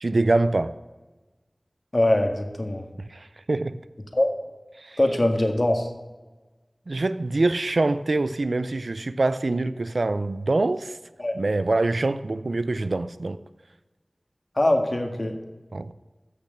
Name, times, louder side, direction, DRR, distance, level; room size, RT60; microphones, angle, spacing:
voice 1, 0.0-0.7 3.0-3.8 4.8-5.0 6.9-11.0 11.3-13.4 15.7-15.9, right 2 dB, 85° right, 13 dB, 0.5 m, -25 dB
voice 2, 1.9-2.9 4.1-4.3 5.0-5.9 11.2-11.3 14.6-15.3, left 1 dB, 50° left, 4 dB, 1.8 m, -22 dB
14.5 x 6.8 x 6.5 m, 1.2 s
wide cardioid pair, 40°, 0 cm